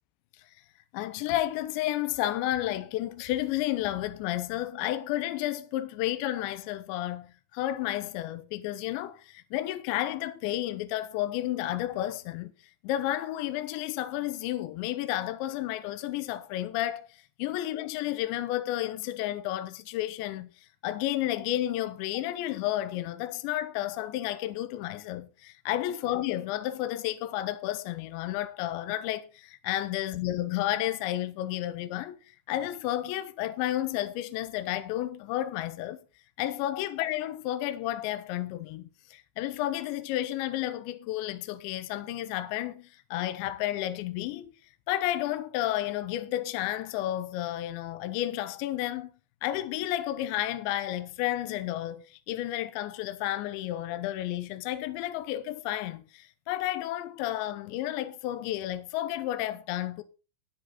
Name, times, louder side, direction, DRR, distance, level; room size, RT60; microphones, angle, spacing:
voice 1, 0.9-12.5 12.8-36.0 36.4-44.5 44.9-49.1 49.4-60.0, left 14 dB, 80° left, 2.7 m, -32 dB
10.5 x 10.5 x 4.1 m
omnidirectional pair, 5.8 m